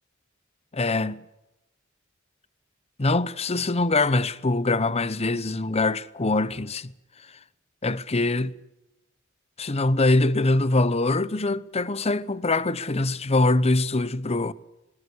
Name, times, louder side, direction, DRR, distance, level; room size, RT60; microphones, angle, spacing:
voice 1, 0.7-1.2 3.0-6.9 7.8-8.5 9.6-14.5, left 2 dB, 30° left, 0.9 m, -23 dB
22.0 x 20.5 x 8.4 m
head